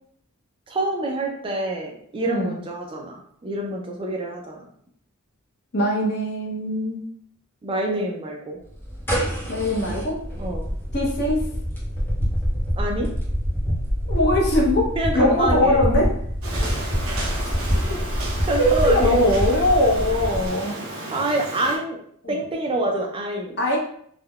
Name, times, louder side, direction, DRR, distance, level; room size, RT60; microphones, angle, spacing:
voice 1, 0.7-4.6 7.6-8.6 10.4-10.7 12.8-13.1 15.0-15.8 16.5-16.8 18.5-19.2 21.1-22.0 22.3-23.6, right 1 dB, 25° right, 1 dB, 0.3 m, -26 dB
voice 2, 5.7-7.1 9.5-10.2 10.9-11.4 14.1-16.1 17.4-17.5 17.9-18.0 18.6-20.8 22.2-22.3 23.6-23.8, left 1 dB, 50° left, -2 dB, 0.7 m, -21 dB
sound 1, 8.7-20.5, equal, 10° left, 0.7 m, -26 dB
sound 2, 16.4-21.8, right 1 dB, 65° right, 0.6 m, -33 dB
3.5 x 2.1 x 2.2 m, 0.64 s
head